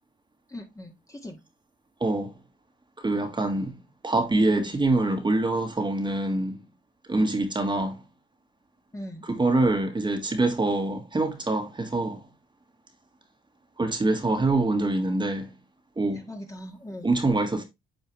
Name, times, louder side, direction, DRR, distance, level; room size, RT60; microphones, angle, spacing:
voice 1, 0.5-1.4 8.9-9.3 16.2-17.1, left 1 dB, 15° left, 1.8 m, -40 dB
voice 2, 2.0-2.3 3.0-3.7 4.0-6.6 7.1-8.0 9.3-12.2 13.8-15.5 16.0-16.3 17.0-17.6, right 2 dB, 25° right, 1.8 m, -25 dB
8.7 x 4.5 x 3.2 m
cardioid pair, 90°, 20 cm